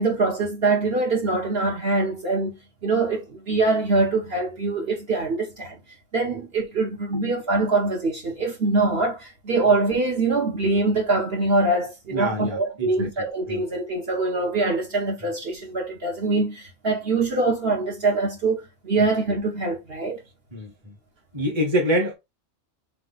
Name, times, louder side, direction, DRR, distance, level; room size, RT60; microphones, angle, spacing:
voice 1, 0.0-5.8 6.1-20.2, right 3 dB, 55° right, 1.3 m, -24 dB
voice 2, 12.1-13.1 13.5-13.6 20.5-20.9 21.3-22.1, equal, 25° right, 1.1 m, -26 dB
3.4 x 3.3 x 4.0 m
omnidirectional pair, 1.3 m